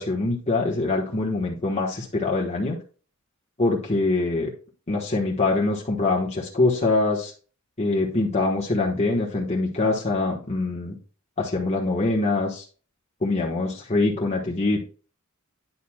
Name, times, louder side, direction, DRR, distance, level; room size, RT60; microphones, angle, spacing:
voice 1, 0.0-2.8 3.6-4.5 4.9-7.3 7.8-11.0 11.4-12.6 13.2-14.8, left 2 dB, 30° left, -3 dB, 1.3 m, -24 dB
10.0 x 6.7 x 2.3 m, 0.38 s
head